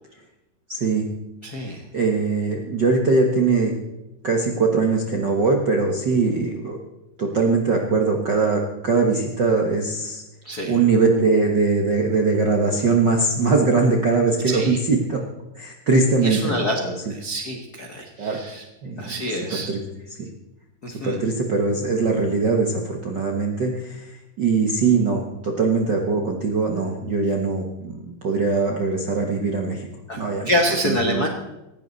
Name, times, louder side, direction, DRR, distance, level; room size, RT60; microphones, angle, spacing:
voice 1, 0.7-1.0 1.9-3.7 4.2-6.8 7.2-10.2 10.6-15.2 15.6-16.9 18.2-18.4 18.8-19.0 19.5-19.8 20.2-20.3 21.0-24.1 24.4-29.9 30.2-30.5 30.8-31.3, right 4 dB, 55° right, 2 dB, 1.2 m, -21 dB
voice 2, 1.4-1.8 10.4-10.8 14.4-14.8 16.2-16.8 17.1-18.6 19.0-19.7 20.8-21.2 30.1-31.3, equal, 50° left, 2 dB, 1.1 m, -26 dB
18.5 x 15.5 x 4.1 m, 0.97 s
omnidirectional pair, 4.0 m